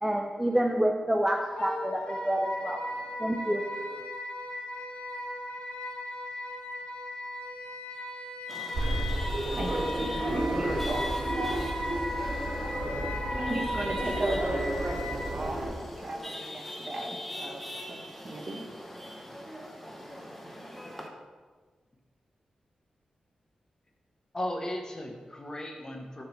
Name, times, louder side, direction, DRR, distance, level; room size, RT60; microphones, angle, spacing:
voice 1, 0.0-2.8 3.2-3.7, right 1 dB, 10° right, 2 dB, 0.6 m, -28 dB
Wind instrument woodwind instrument, 1.6-15.3, left 1 dB, 70° left, 1.7 m, -37 dB
Chatter / Vehicle horn car horn honking / Traffic noise roadway noise, 8.5-21.1, left 1 dB, 5° left, 1.1 m, -42 dB
sound 1, 8.7-15.7, right 1 dB, 80° right, 1.4 m, -32 dB
voice 2, 9.5-11.1 13.3-17.6 17.9-18.6, right 1 dB, 45° right, 2 dB, 1.1 m, -35 dB
voice 3, 24.3-26.2, left 1 dB, 30° left, 2 dB, 1.2 m, -36 dB
6.5 x 4.0 x 6.0 m, 1.4 s
cardioid pair, 80°, 2 cm